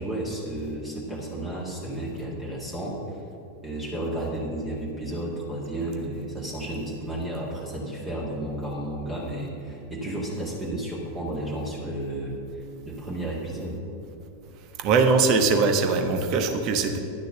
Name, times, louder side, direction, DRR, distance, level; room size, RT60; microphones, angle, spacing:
voice 1, 0.0-3.2 3.6-13.8, right 1 dB, 15° right, -5 dB, 1.9 m, -32 dB
voice 2, 14.8-17.0, right 4 dB, 40° right, 6 dB, 1.1 m, -21 dB
11.0 x 6.7 x 7.3 m, 2.6 s
figure-of-eight pair, 90°, 0 cm